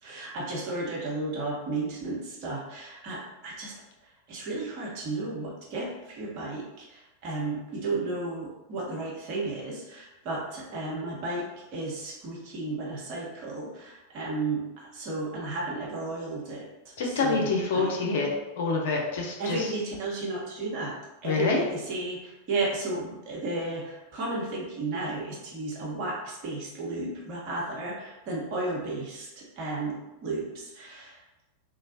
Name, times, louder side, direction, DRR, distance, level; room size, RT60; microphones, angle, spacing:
voice 1, 0.0-3.7 4.3-16.7 17.0-17.9 19.4-20.9 21.2-31.2, right 2 dB, 45° right, -4 dB, 0.9 m, -33 dB
voice 2, 17.0-18.3 18.6-19.6 21.2-21.6, left 4 dB, 55° left, -1 dB, 0.6 m, -26 dB
3.1 x 2.3 x 2.7 m, 1.0 s
figure-of-eight pair, 90°, 0 cm